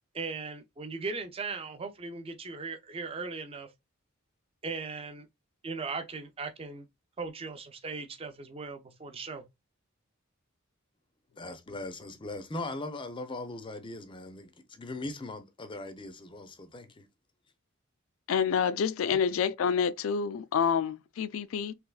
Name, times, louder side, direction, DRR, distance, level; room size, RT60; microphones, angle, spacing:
voice 1, 0.1-3.7 4.6-5.3 5.6-6.9 7.2-9.4, right 4 dB, 25° right, 0.5 m, -38 dB
voice 2, 11.4-17.1, left 2 dB, 25° left, 0.5 m, -40 dB
voice 3, 18.3-21.7, left 7 dB, 75° left, 0.3 m, -28 dB
3.3 x 3.1 x 2.3 m
head